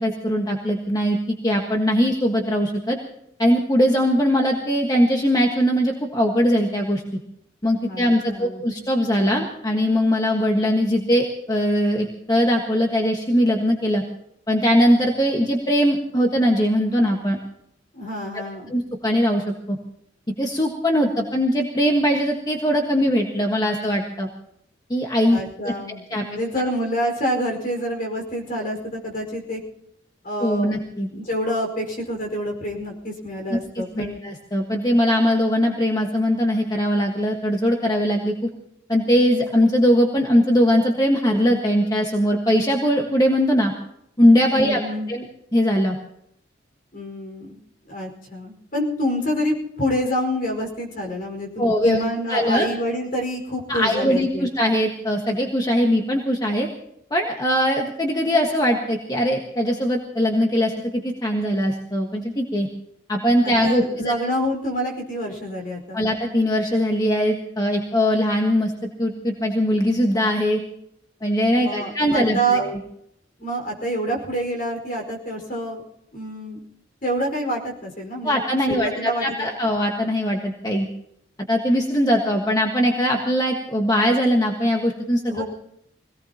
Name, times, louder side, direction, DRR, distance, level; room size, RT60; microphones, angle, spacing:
voice 1, 0.0-3.0 3.4-7.0 7.6-14.0 14.5-17.4 18.7-19.8 20.4-24.3 24.9-26.2 30.4-31.1 33.7-38.5 38.9-43.7 44.2-44.8 45.1-45.3 45.5-46.0 51.6-52.0 52.3-52.7 53.7-56.7 57.1-62.7 63.1-64.1 65.9-68.7 69.0-70.6 71.2-72.8 78.2-80.9 81.5-85.4, equal, 20° left, 1 dB, 1.5 m, -21 dB
voice 2, 7.9-8.6 17.9-18.7 25.3-29.6 30.2-30.7 31.1-34.2 44.5-45.1 46.9-47.6 47.9-54.5 63.4-66.0 71.6-72.6 73.4-75.8 76.1-76.6 77.0-78.4 78.7-79.5 85.3-85.4, equal, 50° left, 1 dB, 4.9 m, -27 dB
24.5 x 18.0 x 2.9 m, 0.76 s
head